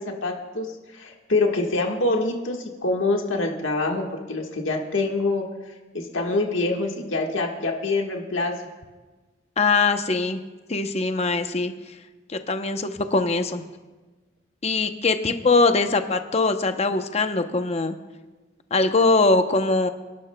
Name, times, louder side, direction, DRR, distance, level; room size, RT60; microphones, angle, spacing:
voice 1, 0.0-5.4 5.9-8.5, left 2 dB, 75° left, 2 dB, 1.5 m, -25 dB
voice 2, 9.6-10.4 10.7-11.7 12.3-13.6 14.6-18.0 18.7-19.9, left 3 dB, 35° left, 7 dB, 0.7 m, -22 dB
28.5 x 11.5 x 2.2 m, 1.2 s
head